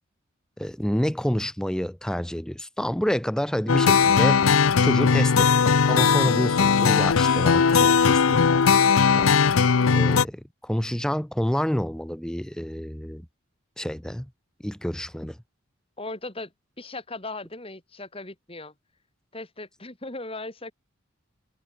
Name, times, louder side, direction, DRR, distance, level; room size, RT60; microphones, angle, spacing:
voice 1, 0.6-8.7 9.0-9.3 9.9-13.3 13.8-14.3 14.6-15.4, equal, 5° left, 0.5 m, -28 dB
sound 1, 3.7-10.3, left 6 dB, 75° left, 0.6 m, -19 dB
voice 2, 16.0-16.5 16.8-18.7 19.3-20.7, left 2 dB, 25° left, 3.0 m, -37 dB
head